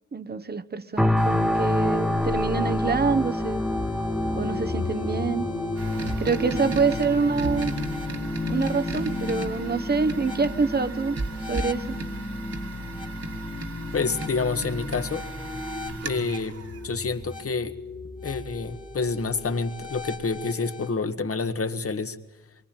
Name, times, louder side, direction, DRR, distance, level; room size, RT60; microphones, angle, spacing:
voice 1, 0.1-3.6 4.4-5.5 6.2-7.7 8.5-11.2 11.4-12.0, right 4 dB, 35° right, 13 dB, 1.0 m, -26 dB
sound 1, 1.0-16.0 16.5-16.6, left 1 dB, ahead, 1.3 m, -30 dB
sound 2, 1.2-20.9, left 3 dB, 25° left, 2.1 m, -36 dB
sound 3, 5.8-17.5, right 2 dB, 60° right, 2.2 m, -36 dB
voice 2, 13.9-15.3 16.0-16.6 16.8-17.8 18.2-22.2, left 4 dB, 50° left, 8 dB, 1.7 m, -28 dB
24.0 x 23.5 x 8.9 m, 1.0 s
wide cardioid pair, 135°, 29 cm